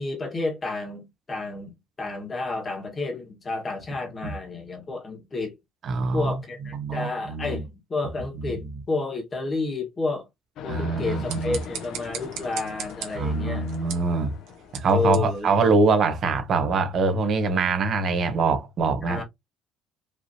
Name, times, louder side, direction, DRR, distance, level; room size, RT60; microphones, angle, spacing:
voice 1, 0.0-5.6 6.1-10.3 10.6-13.7 14.9-15.7 19.0-19.2, left 3 dB, 20° left, 1.5 m, -30 dB
voice 2, 5.8-6.3 6.7-7.6 10.7-11.6 13.1-14.3 14.7-19.2, right 3 dB, 35° right, 0.9 m, -24 dB
sound 1, 10.6-15.3, left 8 dB, 50° left, 0.5 m, -42 dB
sound 2, 11.0-16.3, right 9 dB, 70° right, 1.6 m, -40 dB
5.2 x 3.1 x 2.8 m
cardioid pair, 175°, 0 cm